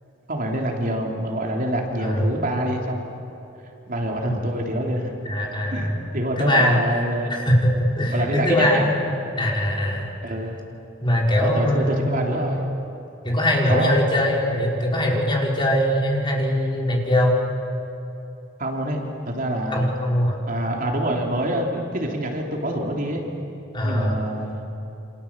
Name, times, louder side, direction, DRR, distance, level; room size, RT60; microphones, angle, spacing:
voice 1, 0.3-3.1 3.9-5.1 5.7-7.3 8.1-8.9 10.2-10.6 11.4-12.7 13.7-14.0 18.6-19.9 20.5-23.2 23.8-24.6, right 1 dB, 50° right, 0 dB, 3.5 m, -26 dB
voice 2, 2.0-2.3 5.2-6.0 6.4-6.8 7.3-10.1 11.0-12.2 13.2-17.4 19.7-20.4 23.7-24.2, left 1 dB, 25° left, -1 dB, 4.8 m, -21 dB
28.5 x 26.5 x 7.5 m, 2.9 s
head